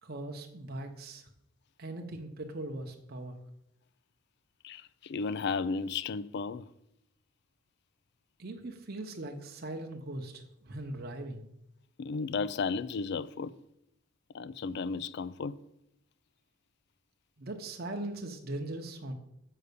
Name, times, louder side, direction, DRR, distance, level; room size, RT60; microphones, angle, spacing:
voice 1, 0.0-1.3 1.8-3.4 8.4-11.5 17.4-19.1, right 1 dB, 45° right, 0.8 m, -40 dB
voice 2, 4.6-6.7 12.0-13.5 14.3-15.6, left 4 dB, 55° left, 0.4 m, -34 dB
6.7 x 5.5 x 6.7 m
head